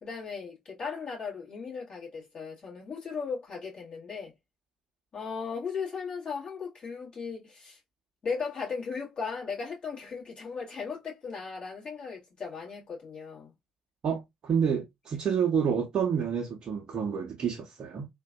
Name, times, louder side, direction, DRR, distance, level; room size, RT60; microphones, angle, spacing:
voice 1, 0.0-4.3 5.1-7.8 8.2-13.5, left 5 dB, 40° left, 2.2 m, -37 dB
voice 2, 14.0-18.1, right 7 dB, 50° right, 0.8 m, -29 dB
3.7 x 2.6 x 2.2 m
figure-of-eight pair, 45°, 2 cm